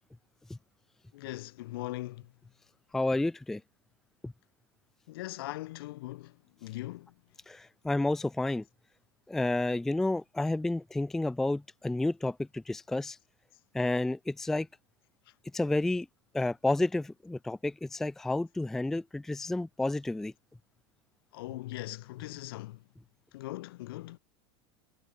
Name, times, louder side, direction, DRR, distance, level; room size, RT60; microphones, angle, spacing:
voice 1, 1.1-2.3 5.1-7.1 21.3-22.8 23.3-24.2, left 18 dB, 65° left, 2.8 m, -40 dB
voice 2, 2.9-3.6 4.2-4.3 7.5-8.6 9.3-13.2 13.7-14.7 15.5-16.1 16.3-20.3, left 2 dB, 5° left, 0.5 m, -30 dB
supercardioid pair, 180°, 13 cm